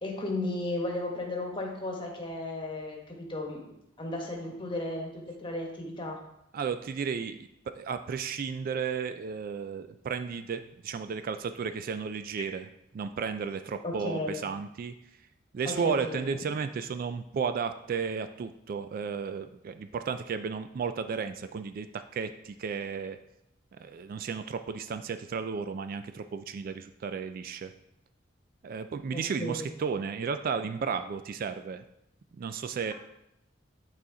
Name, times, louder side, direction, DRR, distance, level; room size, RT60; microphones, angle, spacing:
voice 1, 0.0-3.6 4.0-6.2 13.8-14.4 15.6-16.3 29.1-29.7, left 2 dB, 25° left, 0 dB, 1.3 m, -34 dB
voice 2, 6.5-7.4 7.7-12.7 12.9-14.9 15.5-23.2 23.8-27.7 28.6-31.8 32.3-32.9, right 6 dB, 50° right, 10 dB, 0.3 m, -33 dB
8.6 x 4.1 x 3.8 m, 0.81 s
head